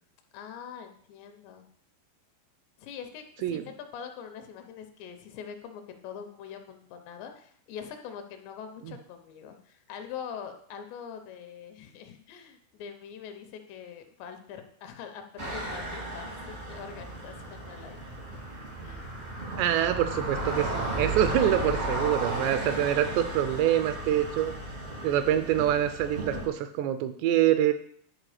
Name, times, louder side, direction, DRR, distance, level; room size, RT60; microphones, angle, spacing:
voice 1, 0.3-1.7 2.8-18.0 18.8-19.1, left 7 dB, 80° left, 6 dB, 2.9 m, -43 dB
sound 1, 15.4-26.5, right 1 dB, 65° right, 0.6 m, -34 dB
voice 2, 19.6-24.5 25.0-27.7, right 11 dB, 85° right, 9 dB, 2.6 m, -25 dB
11.0 x 4.6 x 4.9 m, 0.63 s
omnidirectional pair, 5.2 m